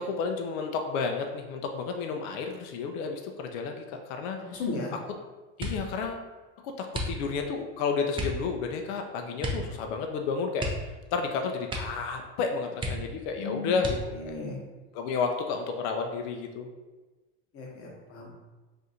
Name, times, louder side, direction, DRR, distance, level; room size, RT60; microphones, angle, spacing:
voice 1, 0.0-4.6 5.6-6.3 6.6-10.7 11.1-14.0 14.2-14.3 14.9-16.7, left 5 dB, 65° left, 4 dB, 0.5 m, -31 dB
voice 2, 4.4-4.9 13.4-13.7 14.2-14.6 17.5-18.3, left 3 dB, 40° left, -2 dB, 1.0 m, -35 dB
sound 1, 5.6-6.0 6.9-7.5 8.1-8.5 9.4-9.7 10.0-10.1 10.5-11.3 11.6-12.1 12.4-12.5 12.8-13.3 13.8-14.3 15.0-15.7 16.0-16.4, equal, 15° right, 0.5 m, -34 dB
2.6 x 2.5 x 4.1 m, 1.2 s
supercardioid pair, 110°, 36 cm